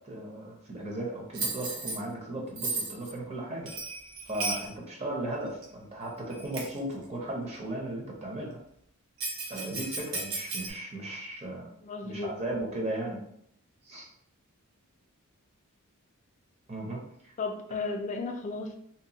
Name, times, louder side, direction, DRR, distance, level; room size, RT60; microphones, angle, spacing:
voice 1, 0.0-3.7 4.3-8.6 9.5-11.7 12.0-13.2 13.8-14.1 16.7-17.3, right 1 dB, 30° right, -1 dB, 0.6 m, -36 dB
Bell, 1.3-2.0 2.6-3.1 3.7-4.7 5.6-5.7 6.3-6.8 9.2-10.7, right 3 dB, 75° right, 0.7 m, -34 dB
voice 2, 11.8-12.3 17.4-18.7, left 3 dB, 35° left, 4 dB, 0.3 m, -34 dB
2.8 x 2.1 x 2.8 m, 0.71 s
head